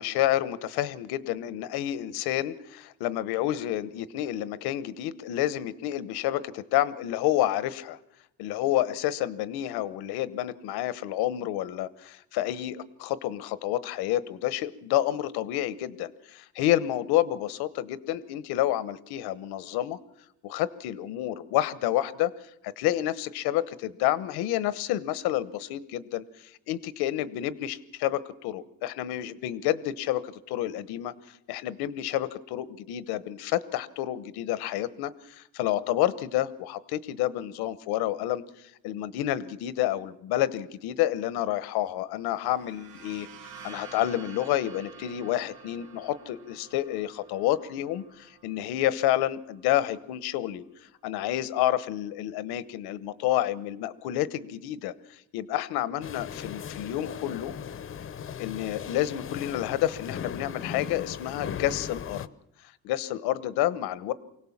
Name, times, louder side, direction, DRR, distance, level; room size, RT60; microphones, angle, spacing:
voice 1, 0.0-8.0 8.4-20.0 20.4-22.3 22.6-26.2 26.7-31.1 31.5-38.4 38.8-43.3 43.6-50.6 51.0-57.5 58.4-62.3 62.8-64.1, left 13 dB, 85° left, 16 dB, 1.1 m, -29 dB
sound 1, 42.3-49.9, right 6 dB, 70° right, 1.8 m, -49 dB
sound 2, 56.0-62.3, left 8 dB, 35° left, 0.7 m, -38 dB
24.5 x 17.5 x 7.3 m, 0.83 s
cardioid pair, 125°, 37 cm